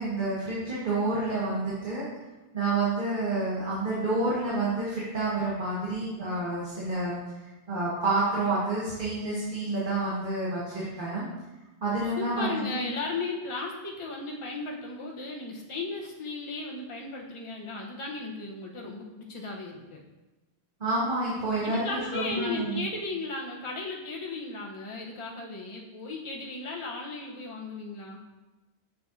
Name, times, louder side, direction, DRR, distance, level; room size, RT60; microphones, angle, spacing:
voice 1, 0.0-2.1 2.5-11.3 11.8-12.9 20.8-22.8, right 2 dB, 50° right, -8 dB, 1.6 m, -29 dB
voice 2, 12.2-20.0 21.6-28.2, left 3 dB, 30° left, -2 dB, 0.9 m, -36 dB
6.8 x 6.6 x 2.6 m, 1.1 s
omnidirectional pair, 1.1 m